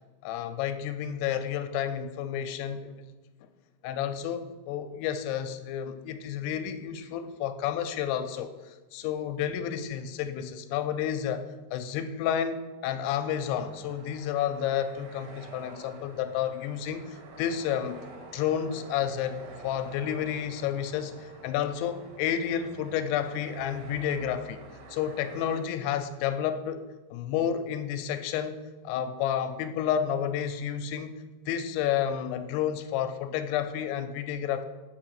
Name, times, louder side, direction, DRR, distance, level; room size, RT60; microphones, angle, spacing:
voice 1, 0.2-3.0 3.8-11.4 11.7-18.0 18.3-24.6 24.9-28.6 28.8-31.1 31.5-34.7, left 9 dB, 85° left, 9 dB, 2.6 m, -31 dB
sound 1, 13.1-25.6, right 3 dB, 70° right, 2.8 m, -48 dB
6.0 x 4.6 x 6.4 m, 1.2 s
omnidirectional pair, 4.6 m